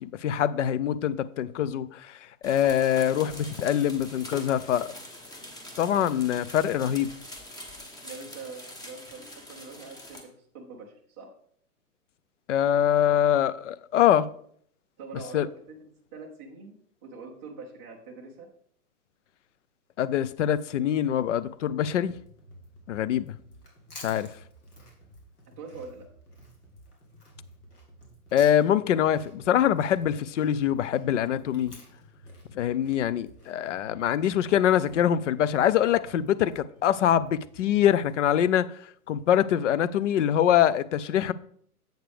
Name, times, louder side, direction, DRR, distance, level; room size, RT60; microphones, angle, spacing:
voice 1, 0.0-4.9 5.8-7.1 12.5-14.3 15.3-15.5 20.0-22.1 22.9-23.4 24.0-24.3 28.3-31.7 32.5-38.7 39.1-41.3, left 10 dB, 55° left, 0.5 m, -24 dB
sound 1, 2.4-10.2, left 1 dB, 10° left, 1.0 m, -44 dB
voice 2, 8.0-11.3 15.0-16.7 17.0-18.5 25.6-26.1, right 4 dB, 10° right, 0.3 m, -44 dB
sound 2, 22.0-38.0, right 1 dB, 70° left, 3.2 m, -53 dB
Chewing mastication, 23.5-28.9 29.1-33.5, left 2 dB, 85° left, 2.5 m, -52 dB
7.8 x 6.7 x 3.4 m
hypercardioid pair, 120°, 45 cm